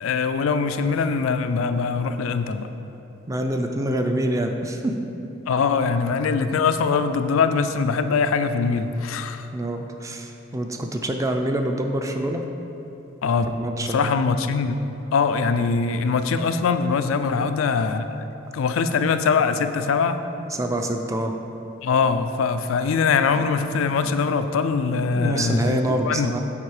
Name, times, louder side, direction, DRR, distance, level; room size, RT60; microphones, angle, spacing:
voice 1, 0.0-2.7 5.5-9.4 13.2-13.5 13.8-14.8 15.1-18.0 18.5-20.2 21.8-25.8 26.1-26.3, left 5 dB, 90° left, 9 dB, 0.4 m, -22 dB
voice 2, 3.3-4.9 9.5-12.4 13.4-14.1 17.4-17.5 20.4-21.3 23.3-23.5 24.0-24.1 24.9-26.4, right 1 dB, 15° right, 4 dB, 0.4 m, -26 dB
7.4 x 4.3 x 4.8 m, 3.0 s
head